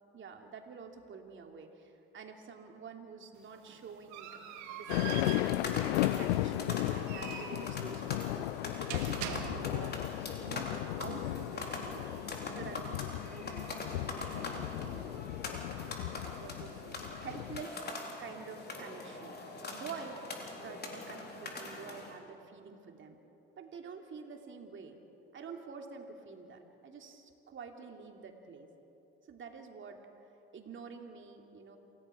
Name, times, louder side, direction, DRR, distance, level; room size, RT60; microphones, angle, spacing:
voice 1, 0.1-4.4 4.7-5.9 6.2-8.5 8.9-10.0 10.4-12.1 12.4-15.2 16.4-17.9 18.2-19.4 19.7-20.2 20.6-23.2 23.6-25.0 25.3-28.7 29.2-30.0 30.5-31.8, right 5 dB, 40° right, 3 dB, 3.0 m, -48 dB
sound 1, 3.3-10.0, right 9 dB, 65° right, 2.3 m, -44 dB
sound 2, 4.8-22.2, left 3 dB, 30° left, 4.2 m, -43 dB
sound 3, 4.9-17.6, left 16 dB, 80° left, 0.6 m, -35 dB
28.0 x 17.0 x 6.1 m, 2.9 s
hypercardioid pair, 70°, 30 cm